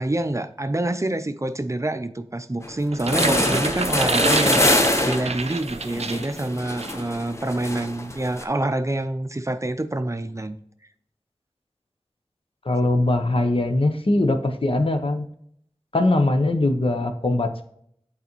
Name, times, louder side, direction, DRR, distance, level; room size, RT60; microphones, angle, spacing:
voice 1, 0.0-10.6, right 1 dB, 30° right, 9 dB, 0.5 m, -27 dB
sound 1, 2.6-2.7 3.0-8.4, left 1 dB, 30° left, 0.7 m, -24 dB
sound 2, 2.9-6.4 6.8-7.0, right 4 dB, 85° right, 0.4 m, -28 dB
voice 2, 12.6-15.3 15.9-17.6, left 2 dB, 60° left, 5 dB, 0.8 m, -21 dB
8.2 x 4.1 x 3.0 m, 0.67 s
wide cardioid pair, 40°, 11 cm